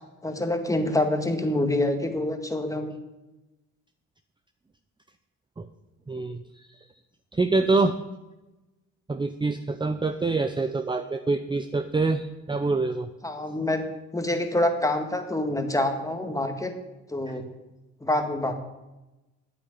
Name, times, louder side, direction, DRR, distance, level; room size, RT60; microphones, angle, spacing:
voice 1, 0.2-3.0 13.2-13.8 14.1-16.7 17.1-17.4 18.0-18.6, left 1 dB, 10° left, 5 dB, 1.9 m, -26 dB
voice 2, 6.1-6.7 7.3-8.0 9.1-13.1 17.3-17.4, right 3 dB, 15° right, 9 dB, 0.7 m, -26 dB
9.1 x 8.2 x 9.5 m, 1.0 s
cardioid pair, 90°, 30 cm